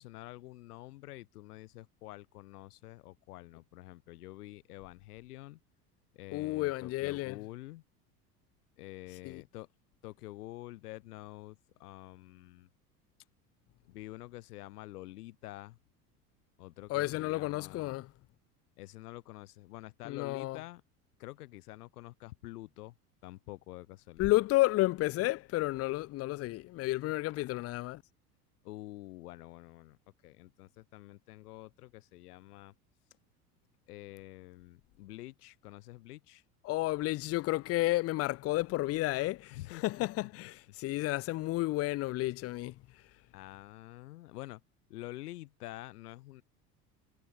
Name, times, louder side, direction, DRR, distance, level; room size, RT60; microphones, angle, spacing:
voice 1, 0.0-5.6 6.1-7.8 8.8-9.7 10.0-12.7 13.8-15.8 16.6-18.0 18.8-20.8 21.2-22.9 23.2-24.4 28.6-32.7 33.9-36.4 39.5-40.3 41.0-41.2 43.3-44.6 44.9-46.4, left 17 dB, 70° left, 6.7 m, -48 dB
voice 2, 6.3-7.4 9.2-9.4 16.9-18.1 20.0-20.6 24.2-28.0 36.6-42.8, left 18 dB, 30° left, 0.5 m, -31 dB
hypercardioid pair, 75°, 47 cm